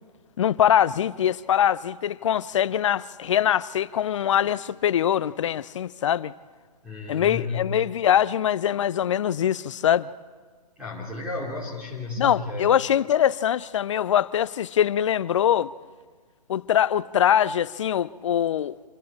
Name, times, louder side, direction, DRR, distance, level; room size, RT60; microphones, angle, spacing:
voice 1, 0.4-6.3 7.1-10.1 12.2-15.7 16.5-18.8, left 10 dB, 50° left, 0.6 m, -23 dB
voice 2, 6.8-7.8 10.8-12.8, left 3 dB, 5° right, 3.1 m, -33 dB
27.5 x 27.0 x 4.3 m
figure-of-eight pair, 135°, 21 cm